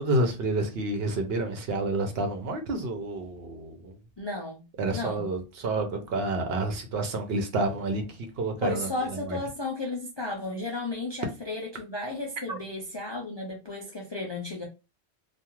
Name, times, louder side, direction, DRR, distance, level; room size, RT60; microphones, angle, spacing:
voice 1, 0.0-4.0 4.8-9.4 12.5-12.6, right 2 dB, 70° right, 0.9 m, -29 dB
voice 2, 4.2-4.6 4.9-5.2 8.6-14.7, left 2 dB, 40° left, 0.3 m, -34 dB
2.3 x 2.3 x 2.9 m
omnidirectional pair, 1.1 m